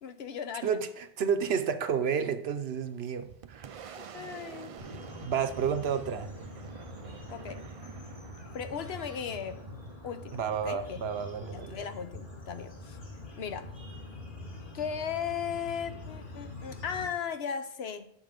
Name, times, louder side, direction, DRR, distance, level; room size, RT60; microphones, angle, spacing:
voice 1, 0.0-0.8 3.8-4.8 7.3-7.6 8.5-9.7 10.0-10.4 10.6-11.0 11.5-13.0 13.4-13.7 14.7-18.1, left 7 dB, 80° left, 1.0 m, -37 dB
voice 2, 0.6-3.7 5.2-6.3 10.3-11.9, right 7 dB, 80° right, 1.0 m, -31 dB
Boom, 2.8-12.2, right 7 dB, 50° right, 0.4 m, -48 dB
sound 1, 4.8-17.1, left 2 dB, 55° left, 2.2 m, -45 dB
10.0 x 6.6 x 5.1 m
omnidirectional pair, 1.0 m